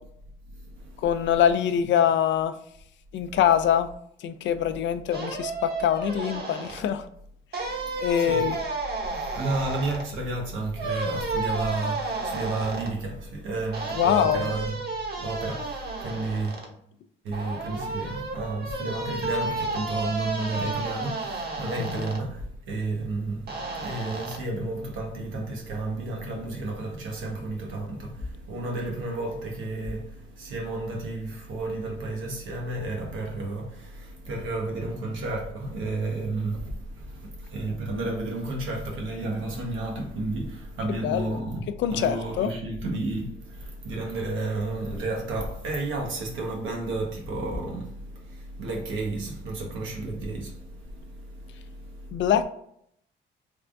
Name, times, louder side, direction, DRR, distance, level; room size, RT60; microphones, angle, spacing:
voice 1, 0.5-1.1 3.2-3.4 7.8-8.5 9.2-14.8 15.2-16.6 17.2-52.3, right 2 dB, 85° right, 1.0 m, -32 dB
voice 2, 1.0-2.5 3.1-3.9 4.2-7.0 8.0-8.6 14.0-14.5 21.9-22.1 41.0-41.3 41.8-42.5 52.1-52.4, left 9 dB, 65° left, 0.4 m, -24 dB
sound 1, 5.1-6.8 7.5-10.0 10.8-12.9 13.7-16.7 17.3-22.2 23.5-24.4, right 3 dB, 55° right, 1.1 m, -32 dB
3.4 x 2.5 x 3.4 m
cardioid pair, 90°, 20 cm